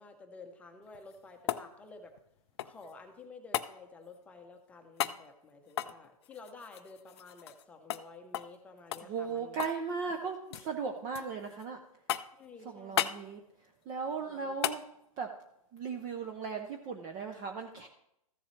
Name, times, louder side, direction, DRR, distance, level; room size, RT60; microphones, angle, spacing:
voice 1, 0.0-2.1 2.6-9.7 12.4-13.1 14.2-14.8, left 3 dB, 5° left, 4 dB, 0.8 m, -52 dB
sound 1, 0.9-2.9 3.5-3.7 5.0-5.2 5.7-7.6 7.9-8.0 8.3-8.6 8.9-9.8 10.1-10.7 11.1-11.7 12.1-12.5 13.0-13.2 14.6-14.8 17.2-17.3, left 12 dB, 45° left, 0.4 m, -35 dB
voice 2, 9.0-11.8 12.7-13.4 13.9-14.8 15.2-15.3 15.7-17.9, right 5 dB, 20° right, 5 dB, 0.5 m, -37 dB
14.0 x 7.1 x 3.2 m, 0.81 s
hypercardioid pair, 150°, 19 cm